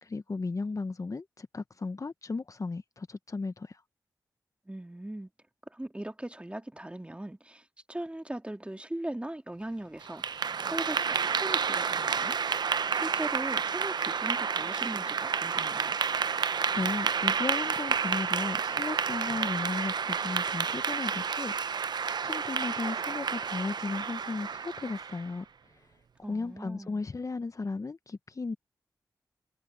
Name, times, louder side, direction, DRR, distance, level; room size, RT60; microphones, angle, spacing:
voice 1, 0.0-3.8 16.7-25.5 25.8-25.9 26.3-28.5, left 3 dB, 45° left, 1.0 m, -35 dB
voice 2, 4.6-5.3 5.7-12.4 12.9-16.0 26.2-27.0, right 1 dB, 15° right, 2.9 m, -39 dB
Clapping / Applause, 10.0-25.3, right 6 dB, 65° right, 0.7 m, -30 dB
cardioid pair, 45°, 8 cm